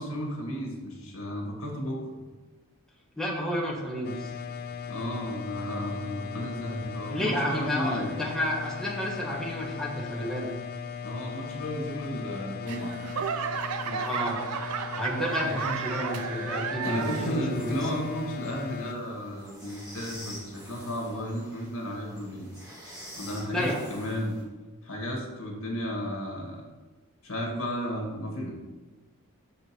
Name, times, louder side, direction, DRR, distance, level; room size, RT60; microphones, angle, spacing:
voice 1, 0.0-2.2 4.9-8.1 11.0-13.0 15.4-15.6 16.8-22.5 23.2-24.4 24.8-26.6 27.2-28.5, equal, 60° left, 0 dB, 2.3 m, -33 dB
voice 2, 3.2-4.3 7.1-10.5 13.8-14.4 14.9-17.8 23.5-23.8, equal, 5° left, -3 dB, 1.3 m, -31 dB
sound 1, 4.0-18.9, left 6 dB, 45° left, 0.4 m, -38 dB
Laughter / Clapping / Crowd, 12.7-17.4 17.8-18.3 18.9-19.0, right 7 dB, 90° right, 0.5 m, -33 dB
sound 2, 16.8-24.4, equal, 20° right, 2.8 m, -46 dB
6.5 x 5.6 x 6.3 m, 1.2 s
head